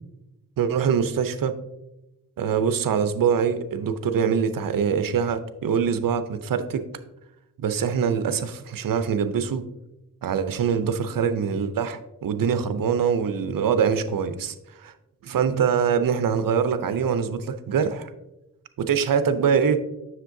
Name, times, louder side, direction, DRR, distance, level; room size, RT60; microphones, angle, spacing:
voice 1, 0.6-1.6 2.4-6.8 7.6-9.6 10.2-14.9 15.2-18.1 18.8-19.8, right 7 dB, 70° right, 10 dB, 0.6 m, -24 dB
7.3 x 6.4 x 2.6 m, 0.95 s
cardioid pair, 80°, 35 cm